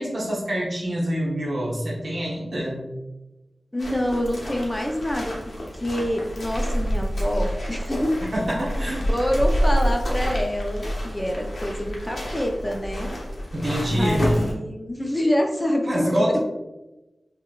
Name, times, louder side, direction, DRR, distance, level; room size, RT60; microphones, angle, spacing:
voice 1, 0.0-2.9 8.3-9.1 13.5-14.5 15.9-16.4, equal, 55° right, -4 dB, 0.9 m, -25 dB
voice 2, 3.7-5.3 5.8-8.1 9.1-13.1 13.9-16.2, equal, 15° left, 2 dB, 0.5 m, -26 dB
sound 1, 3.8-14.5, equal, 65° left, 0.7 m, -28 dB
3.7 x 2.1 x 2.3 m, 1.0 s
wide cardioid pair, 85°, 0 cm